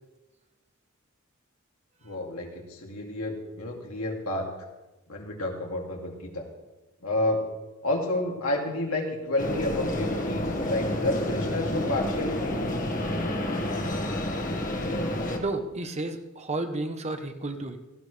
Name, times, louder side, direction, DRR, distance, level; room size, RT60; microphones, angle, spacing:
voice 1, 2.0-4.5 5.1-6.4 7.0-7.4 7.8-12.6, left 2 dB, 75° left, 0 dB, 2.7 m, -30 dB
sound 1, 9.4-15.4, left 1 dB, 40° left, 1.8 m, -29 dB
voice 2, 15.4-17.8, right 2 dB, 30° right, 6 dB, 1.1 m, -32 dB
17.5 x 15.5 x 3.4 m, 1.1 s
head